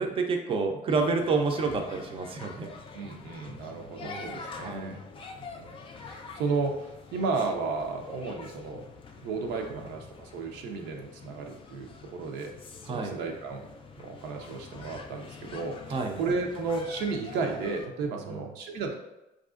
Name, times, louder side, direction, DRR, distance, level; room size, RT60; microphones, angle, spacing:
voice 1, 0.0-2.7 3.7-3.8 4.0-4.3 4.6-4.9 12.9-13.1 15.9-16.2 18.3-18.4, right 4 dB, 35° right, 3 dB, 0.5 m, -29 dB
sound 1, 0.9-17.9, left 4 dB, 30° left, 0.4 m, -46 dB
voice 2, 2.9-5.0 5.3-5.8 6.0-8.8 9.2-12.5 12.8-13.6 14.0-19.0, right 4 dB, 90° right, 2 dB, 0.6 m, -33 dB
4.7 x 2.5 x 2.4 m, 0.96 s
cardioid pair, 110°, 17 cm